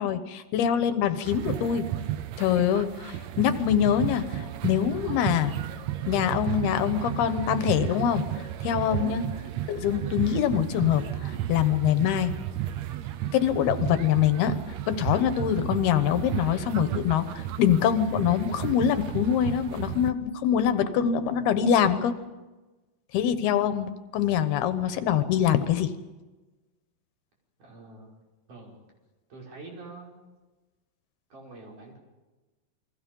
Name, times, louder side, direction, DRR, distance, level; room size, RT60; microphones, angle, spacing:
voice 1, 0.0-1.9 2.4-5.5 6.1-8.2 8.6-9.2 9.7-12.3 13.3-14.6 14.9-22.1 23.1-25.9, left 9 dB, 80° left, 10 dB, 3.0 m, -24 dB
sound 1, 1.2-20.1, right 12 dB, 85° right, 1.5 m, -33 dB
voice 2, 27.6-28.1 28.5-28.8 29.3-30.2 31.3-32.0, right 3 dB, 50° right, -2 dB, 7.1 m, -45 dB
29.0 x 22.5 x 5.4 m, 1.2 s
omnidirectional pair, 4.5 m